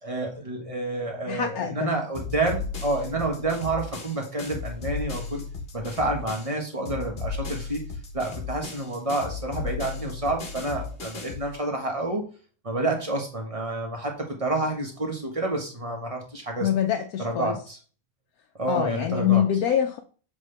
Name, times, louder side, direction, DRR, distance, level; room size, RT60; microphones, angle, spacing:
voice 1, 0.0-5.4 5.7-7.9 8.1-12.2 12.6-16.7 17.2-17.8 18.6-19.4, right 2 dB, 25° right, 1 dB, 1.4 m, -29 dB
voice 2, 1.3-2.0 16.6-17.5 18.7-20.0, left 10 dB, 85° left, 4 dB, 1.1 m, -24 dB
sound 1, 2.1-6.6 6.8-11.5, left 4 dB, 45° left, 1.2 m, -35 dB
7.4 x 3.8 x 3.3 m, 0.39 s
omnidirectional pair, 1.5 m